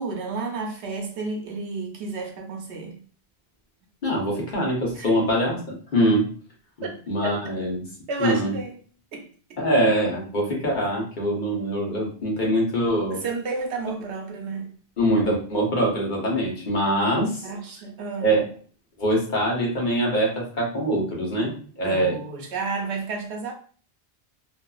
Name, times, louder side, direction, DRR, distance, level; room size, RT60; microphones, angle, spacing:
voice 1, 0.0-3.0 4.9-5.1 6.8-7.5 8.1-8.8 9.1-9.7 13.1-14.7 16.7-17.0 17.4-18.3 21.8-23.5, right 3 dB, 85° right, 0.9 m, -32 dB
voice 2, 4.0-6.3 7.1-7.9 8.2-8.5 9.6-13.2 15.0-17.4 18.2-18.5 19.0-22.2, right 1 dB, 50° left, 1.0 m, -23 dB
2.6 x 2.4 x 2.3 m
omnidirectional pair, 1.1 m